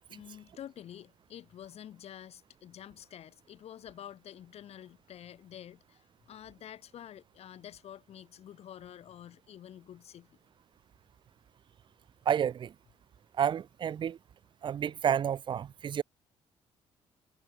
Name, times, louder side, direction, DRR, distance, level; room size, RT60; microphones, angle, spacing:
voice 1, 0.1-10.3, left 10 dB, 65° left, 1.2 m, -48 dB
voice 2, 12.3-12.7 13.4-14.2 14.6-16.0, right 8 dB, 45° right, 0.4 m, -30 dB
cardioid pair, 100°, 12 cm